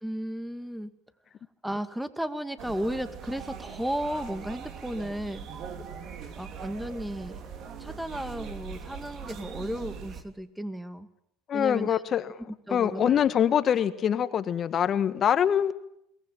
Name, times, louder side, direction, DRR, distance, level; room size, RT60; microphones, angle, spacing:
voice 1, 0.0-0.9 1.6-5.5 6.4-7.4 7.8-11.1 11.5-12.0 12.7-13.2, equal, 5° right, 11 dB, 2.0 m, -34 dB
sound 1, 2.6-10.2, right 7 dB, 55° right, 3.1 m, -41 dB
voice 2, 11.5-12.3 12.7-15.7, left 9 dB, 45° left, 11 dB, 1.7 m, -24 dB
22.5 x 19.0 x 9.1 m, 0.76 s
supercardioid pair, 95°, 0 cm